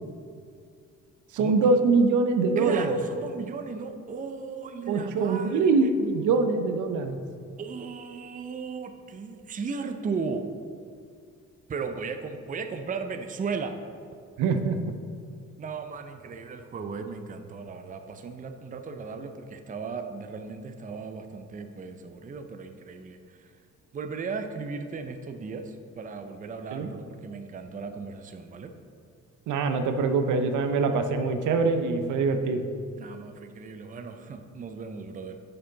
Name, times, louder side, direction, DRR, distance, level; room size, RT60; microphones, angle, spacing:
voice 1, 1.3-2.9 4.9-7.2 14.4-14.8 26.7-26.9 29.5-32.6, right 4 dB, 75° right, 7 dB, 0.6 m, -24 dB
voice 2, 2.6-5.9 7.6-10.5 11.7-13.8 15.6-23.5 23.9-28.7 33.0-35.4, right 5 dB, 25° right, 7 dB, 0.5 m, -36 dB
6.6 x 5.8 x 3.9 m, 2.3 s
cardioid pair, 90°, 30 cm